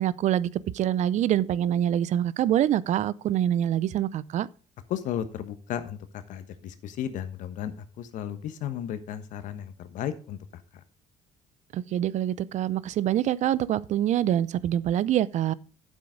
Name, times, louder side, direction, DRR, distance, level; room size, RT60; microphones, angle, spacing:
voice 1, 0.0-4.5 11.7-15.5, right 11 dB, 60° right, 0.6 m, -25 dB
voice 2, 4.9-10.6, left 10 dB, 70° left, 1.3 m, -34 dB
9.0 x 7.6 x 5.0 m
supercardioid pair, 70°, 14 cm